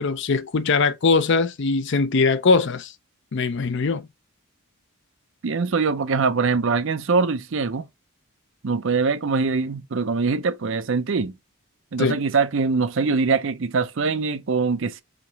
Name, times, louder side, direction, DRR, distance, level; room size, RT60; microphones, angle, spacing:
voice 1, 0.0-2.9 3.3-4.1 12.0-12.2, left 4 dB, 55° left, 0.5 m, -21 dB
voice 2, 5.4-7.9 8.6-11.3 11.9-15.0, right 4 dB, 60° right, 0.5 m, -23 dB
5.1 x 2.9 x 2.9 m
head